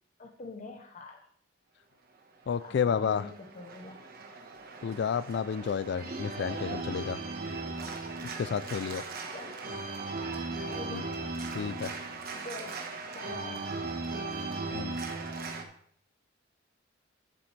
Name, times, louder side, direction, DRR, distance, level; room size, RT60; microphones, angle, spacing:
voice 1, 0.2-1.2 2.6-4.0 9.3-9.8 10.7-11.1 12.4-12.8 13.1-13.7, left 2 dB, 40° left, 2 dB, 0.8 m, -45 dB
voice 2, 2.5-3.3 4.8-7.2 8.2-9.0 10.9-11.0 11.5-11.9 14.7-15.0, left 6 dB, 65° left, 16 dB, 0.3 m, -31 dB
Organ, 2.5-15.6, right 3 dB, 55° right, 1.2 m, -38 dB
11.0 x 7.4 x 3.3 m, 0.64 s
head